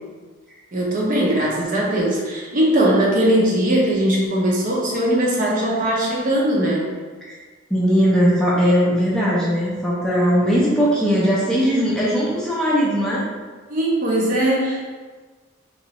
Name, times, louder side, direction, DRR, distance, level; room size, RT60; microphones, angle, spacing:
voice 1, 0.7-6.9 13.7-14.8, right 1 dB, 40° right, -3 dB, 0.7 m, -20 dB
voice 2, 7.7-13.2, equal, 5° left, -7 dB, 0.6 m, -19 dB
3.5 x 3.1 x 2.9 m, 1.4 s
head